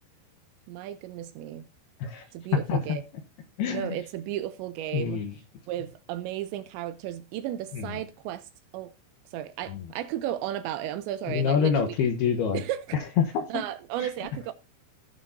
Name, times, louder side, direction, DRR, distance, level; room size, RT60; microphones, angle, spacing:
voice 1, 0.7-1.7 2.3-3.0 3.7-5.2 5.7-8.9 9.3-11.9 12.5-13.0 13.5-14.5, right 12 dB, 80° right, 2.7 m, -34 dB
voice 2, 2.7-3.0 3.6-4.0 4.9-5.4 7.7-7.9 9.7-9.9 11.3-12.6 12.9-13.5 14.0-14.1, left 7 dB, 70° left, 2.6 m, -26 dB
16.5 x 6.3 x 2.7 m
omnidirectional pair, 5.5 m